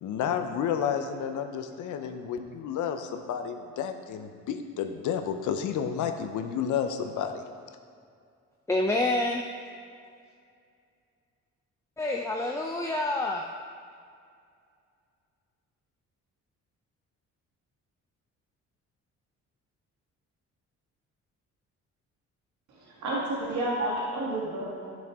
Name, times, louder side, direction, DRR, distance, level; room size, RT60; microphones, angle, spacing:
voice 1, 0.0-7.4, left 8 dB, 75° left, 7 dB, 0.7 m, -31 dB
voice 2, 8.7-9.5 12.0-13.5, left 2 dB, 10° left, 1 dB, 0.5 m, -27 dB
voice 3, 22.7-25.0, right 1 dB, 75° right, -5 dB, 1.6 m, -31 dB
10.5 x 6.2 x 3.6 m, 2.2 s
cardioid pair, 90°, 30 cm